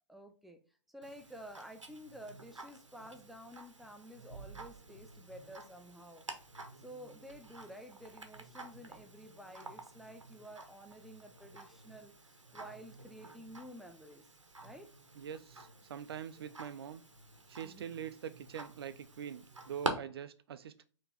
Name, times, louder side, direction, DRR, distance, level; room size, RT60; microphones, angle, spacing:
voice 1, 0.1-0.6 0.9-6.2 6.8-14.3 14.6-14.9 17.6-17.8, equal, ahead, 0.3 m, -51 dB
Tick-tock, 1.0-19.9, right 2 dB, 85° right, 0.9 m, -48 dB
voice 2, 15.2-17.0 17.5-20.8, right 8 dB, 55° right, 0.5 m, -44 dB
4.5 x 3.0 x 3.7 m
figure-of-eight pair, 120°, 15 cm